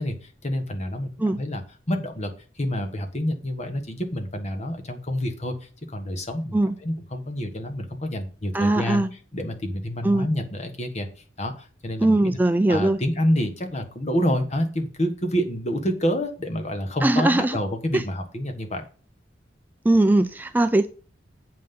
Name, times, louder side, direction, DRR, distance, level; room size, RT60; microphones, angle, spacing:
voice 1, 0.0-1.6 1.9-9.0 9.3-11.1 11.4-12.4 12.7-18.8, equal, 35° left, 5 dB, 1.4 m, -28 dB
voice 2, 8.5-9.1 10.0-10.3 12.0-13.0 17.0-17.6 17.9-18.0 19.8-20.9, right 2 dB, 10° right, 9 dB, 0.3 m, -20 dB
7.6 x 5.7 x 5.3 m, 0.38 s
head